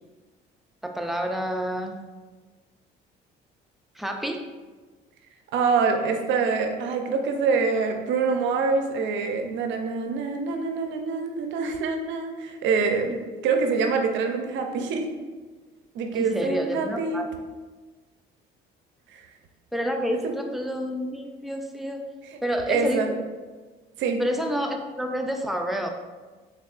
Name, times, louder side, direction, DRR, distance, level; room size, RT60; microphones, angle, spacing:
voice 1, 0.8-2.0 4.0-4.5 16.1-17.3 19.7-22.1 22.4-23.2 24.2-25.9, equal, ahead, 3 dB, 0.4 m, -29 dB
voice 2, 5.5-15.1 15.9-17.3 19.1-19.2 20.2-20.4 22.7-23.1 24.0-24.2, right 4 dB, 70° right, 4 dB, 0.5 m, -25 dB
3.5 x 3.4 x 2.4 m, 1.3 s
supercardioid pair, 80°, 20 cm